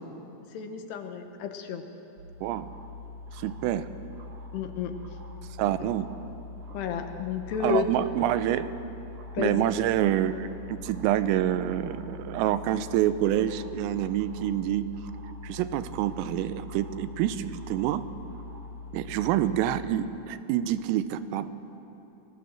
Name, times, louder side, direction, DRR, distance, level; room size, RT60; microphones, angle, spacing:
voice 1, 0.5-1.8 4.5-4.9 5.8-5.9 6.7-7.9 9.3-9.7, left 7 dB, 70° left, 6 dB, 2.8 m, -31 dB
sound 1, 2.2-19.7, left 3 dB, 45° right, 3.1 m, -43 dB
voice 2, 3.3-3.9 5.6-6.1 7.6-8.7 9.4-14.9 15.4-18.0 18.9-21.5, right 12 dB, 85° right, 13 dB, 3.4 m, -27 dB
29.0 x 20.0 x 7.7 m, 3.0 s
omnidirectional pair, 5.8 m